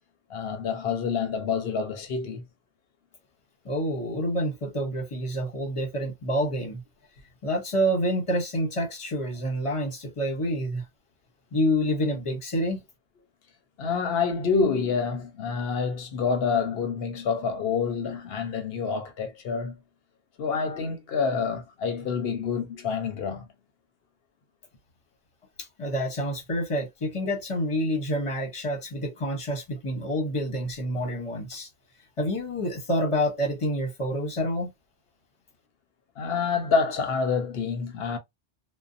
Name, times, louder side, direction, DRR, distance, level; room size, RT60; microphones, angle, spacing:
voice 1, 0.3-2.5 13.8-19.8 20.4-23.5 36.2-38.2, left 5 dB, 60° left, 0.8 m, -27 dB
voice 2, 3.6-6.8 7.4-10.8 11.5-12.8 25.6-31.7 32.2-34.7, equal, 30° left, 0.8 m, -28 dB
2.6 x 2.1 x 2.4 m
omnidirectional pair, 1.2 m